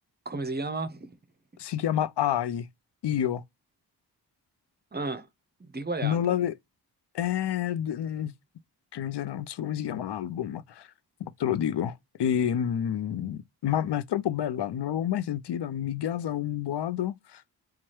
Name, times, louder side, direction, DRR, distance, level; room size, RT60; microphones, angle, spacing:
voice 1, 0.2-1.1 4.9-5.3 5.6-6.4, right 3 dB, 25° right, 0.6 m, -33 dB
voice 2, 1.6-2.7 3.0-3.4 6.0-6.5 7.1-8.3 8.9-10.9 11.2-17.4, left 10 dB, 80° left, 0.7 m, -29 dB
4.7 x 2.3 x 2.8 m
wide cardioid pair, 120°, 40 cm